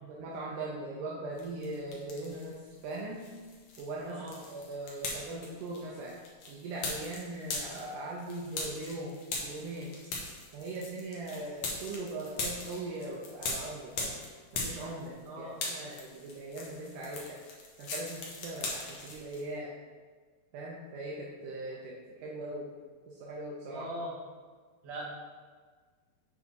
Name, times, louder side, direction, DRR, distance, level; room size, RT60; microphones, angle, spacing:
voice 1, 0.0-3.2 3.8-6.2 6.5-10.0 10.5-14.2 14.5-17.4 17.8-19.8 20.5-22.7 23.1-23.9, right 2 dB, 80° right, -4 dB, 2.3 m, -40 dB
Popping bubblewrap in a garage, 1.4-2.5 2.9-15.3 15.5-19.4, left 3 dB, 65° left, 2.1 m, -40 dB
voice 2, 4.1-4.4 15.3-15.6 23.7-24.1 24.8-25.1, right 1 dB, 60° right, -5 dB, 2.6 m, -40 dB
7.4 x 4.0 x 4.6 m, 1.5 s
omnidirectional pair, 3.7 m